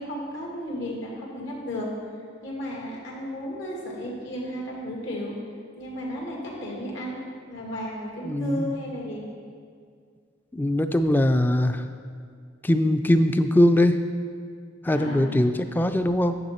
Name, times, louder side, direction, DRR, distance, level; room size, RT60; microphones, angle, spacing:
voice 1, 0.0-1.9 2.4-5.4 5.8-7.2 7.5-9.2 14.9-15.4, equal, 80° left, -3 dB, 2.1 m, -33 dB
voice 2, 8.2-8.7 10.5-11.8 12.6-14.0 14.8-16.4, left 1 dB, 10° left, 9 dB, 0.3 m, -21 dB
9.3 x 6.9 x 4.3 m, 2.1 s
head